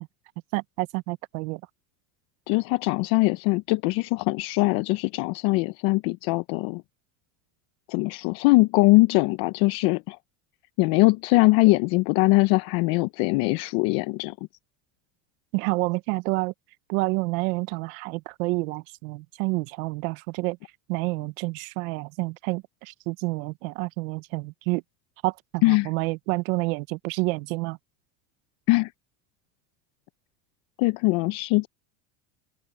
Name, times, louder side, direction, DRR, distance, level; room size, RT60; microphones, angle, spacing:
voice 1, 0.5-1.6 15.5-16.5 16.9-20.6 20.9-24.8 25.2-27.8, right 25 dB, 80° right, 0.8 m, -28 dB
voice 2, 2.5-6.8 7.9-10.2 10.8-14.4 25.6-25.9 28.7-28.9 30.8-31.7, left 23 dB, 60° left, 0.6 m, -22 dB
open air
cardioid pair, 155°, 41 cm